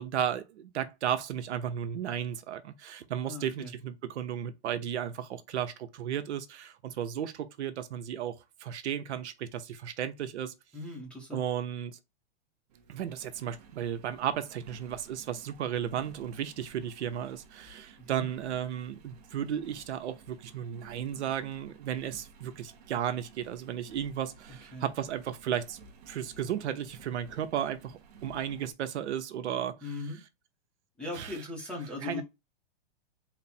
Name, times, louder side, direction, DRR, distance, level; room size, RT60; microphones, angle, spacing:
voice 1, 0.0-8.3 8.6-10.5 11.3-12.0 12.9-25.8 26.1-29.9 31.1-31.4 32.0-32.2, right 9 dB, 80° right, 0.8 m, -34 dB
voice 2, 3.3-3.7 10.7-11.4 18.0-18.3 24.7-24.9 29.8-30.2 31.0-32.2, left 3 dB, 5° left, 0.6 m, -39 dB
Engine, 12.7-28.7, right 5 dB, 35° right, 0.6 m, -55 dB
4.1 x 2.1 x 4.1 m
hypercardioid pair, 160°, 34 cm